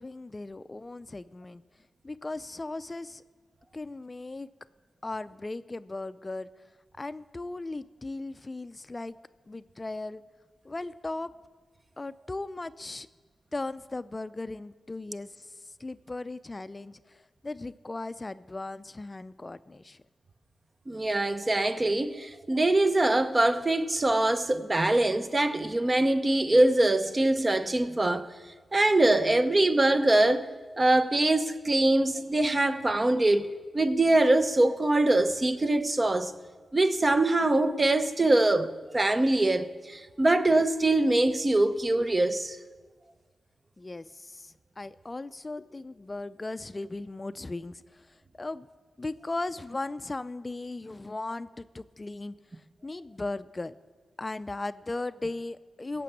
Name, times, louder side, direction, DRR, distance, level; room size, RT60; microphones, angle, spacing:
voice 1, 0.0-1.6 2.0-3.2 3.7-4.5 5.0-6.5 7.0-9.2 9.5-10.2 10.6-11.3 12.0-13.1 13.5-20.0 40.9-41.0 43.8-48.7 49.0-52.4 52.8-53.7 54.2-56.0, left 2 dB, 35° left, 0.4 m, -37 dB
voice 2, 20.9-28.3 28.7-30.5 30.8-33.5 33.7-36.3 36.7-42.6, right 2 dB, 35° right, 0.9 m, -23 dB
16.0 x 6.8 x 8.5 m
cardioid pair, 45°, 0 cm